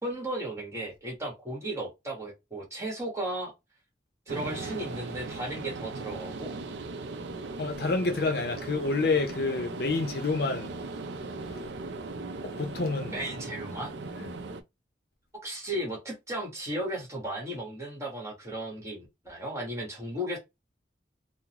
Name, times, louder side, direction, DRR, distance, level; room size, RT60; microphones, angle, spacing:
voice 1, 0.0-3.5 4.3-6.5 13.1-13.9 15.4-20.4, right 1 dB, 15° right, 1.3 m, -35 dB
sound 1, 4.3-14.6, right 3 dB, 75° right, 0.5 m, -38 dB
voice 2, 7.6-10.7 11.6-11.7 12.4-13.2 14.2-14.3, left 3 dB, 55° left, 0.6 m, -28 dB
3.7 x 2.0 x 2.9 m
head